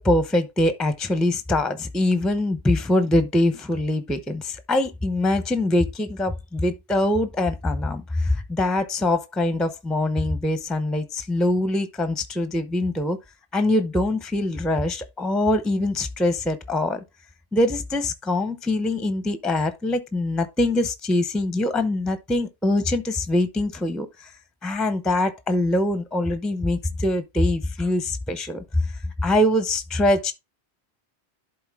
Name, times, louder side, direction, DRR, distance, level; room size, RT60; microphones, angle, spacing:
voice 1, 0.0-13.2 13.5-17.0 17.5-24.3 24.6-28.9 29.2-30.3, left 1 dB, ahead, 0.5 m, -23 dB
11.5 x 3.9 x 3.5 m
omnidirectional pair, 1.1 m